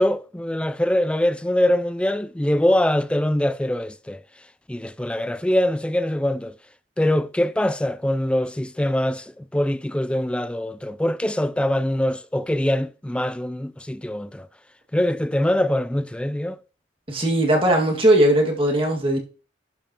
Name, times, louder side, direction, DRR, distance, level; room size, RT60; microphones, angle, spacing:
voice 1, 0.0-4.2 4.7-6.5 7.0-14.5 14.9-16.6, left 1 dB, 5° left, 0.3 m, -23 dB
voice 2, 17.1-19.2, right 1 dB, 30° right, 2.0 m, -19 dB
11.5 x 5.3 x 2.9 m
head